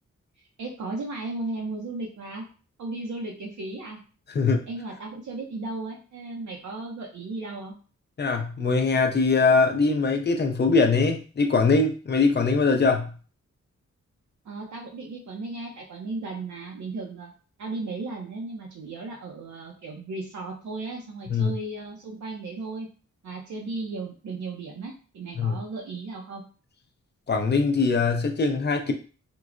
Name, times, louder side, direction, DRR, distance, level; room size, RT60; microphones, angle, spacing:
voice 1, 0.6-2.5 2.8-4.0 4.7-7.7 14.4-17.3 17.6-22.9 23.2-26.4, right 3 dB, 70° right, -1 dB, 0.6 m, -35 dB
voice 2, 4.3-4.7 8.2-13.1 21.3-21.5 25.4-25.6 27.3-28.9, left 4 dB, 35° left, 4 dB, 0.4 m, -22 dB
4.5 x 2.0 x 2.4 m, 0.38 s
wide cardioid pair, 145°, 30 cm